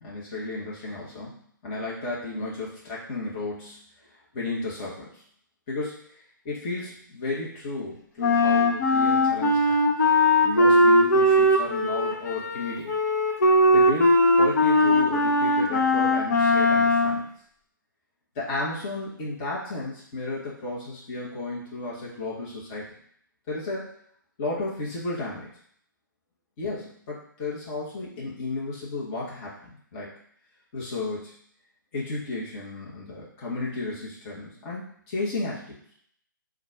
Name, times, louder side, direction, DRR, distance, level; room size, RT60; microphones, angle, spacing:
voice 1, 0.0-3.8 4.3-5.2 5.7-6.1 6.4-9.9 10.4-12.9 13.7-17.3 18.3-22.9 23.5-23.9 24.4-25.5 26.6-30.1 30.7-31.3 31.9-35.8, left 2 dB, 30° left, -6 dB, 1.4 m, -33 dB
Wind instrument woodwind instrument, 8.2-17.2, left 1 dB, 50° left, 0.8 m, -20 dB
4.4 x 2.5 x 4.5 m, 0.63 s
figure-of-eight pair, 140°, 11 cm